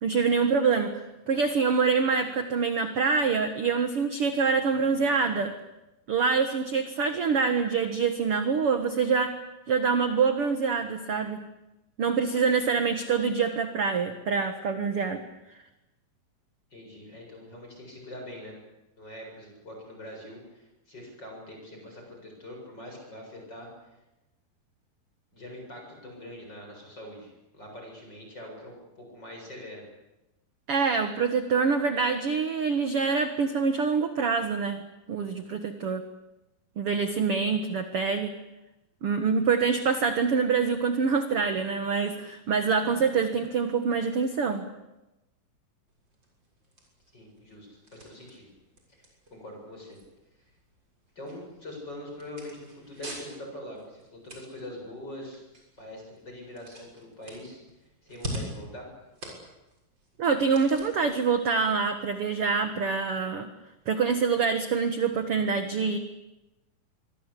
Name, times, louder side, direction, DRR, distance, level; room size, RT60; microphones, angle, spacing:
voice 1, 0.0-0.9 1.3-5.5 6.1-9.3 9.7-11.4 12.0-15.2 30.7-34.8 35.1-36.0 36.8-38.3 39.0-44.7 60.2-63.5 63.9-66.0, right 5 dB, 55° right, 7 dB, 1.7 m, -25 dB
voice 2, 16.7-18.5 19.0-23.7 25.3-29.8 47.1-48.5 49.3-50.0 51.2-55.4 55.8-57.6 58.0-58.9, left 1 dB, 25° left, 1 dB, 8.0 m, -43 dB
sound 1, 45.9-62.8, right 1 dB, 25° right, 7.0 m, -46 dB
27.0 x 23.5 x 8.4 m, 0.98 s
omnidirectional pair, 4.4 m